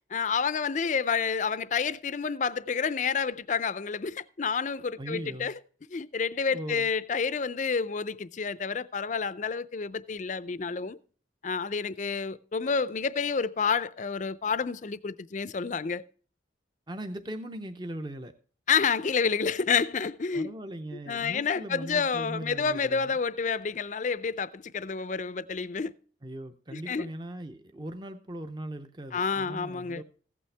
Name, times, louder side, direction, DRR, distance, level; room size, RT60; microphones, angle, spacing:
voice 1, 0.1-5.5 5.9-11.0 11.4-16.0 18.7-20.5 21.1-25.9 26.7-27.1 29.1-30.0, left 5 dB, 40° left, 0.4 m, -29 dB
voice 2, 5.0-5.5 6.5-6.9 16.9-18.3 20.3-23.2 26.2-30.0, right 1 dB, 25° right, 0.6 m, -39 dB
15.5 x 8.4 x 3.3 m
head